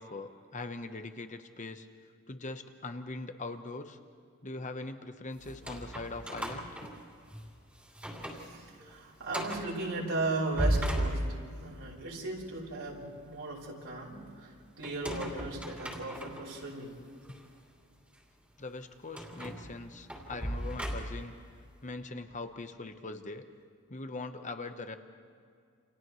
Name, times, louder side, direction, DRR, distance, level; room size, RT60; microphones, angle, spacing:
voice 1, 0.0-1.9 2.3-4.0 4.4-6.9 17.3-17.4 18.6-21.3 21.8-23.4 23.9-25.0, left 3 dB, 35° left, 8 dB, 1.0 m, -41 dB
sound 1, 5.4-7.5 7.9-8.5 8.8-8.9 9.3-9.7 10.3-11.7 14.8-16.6 17.2-17.4 19.1-21.4, equal, 5° right, 2.9 m, -35 dB
voice 2, 8.2-11.2 11.6-17.0, right 2 dB, 70° right, -4 dB, 4.8 m, -37 dB
29.0 x 28.0 x 3.2 m, 2.2 s
head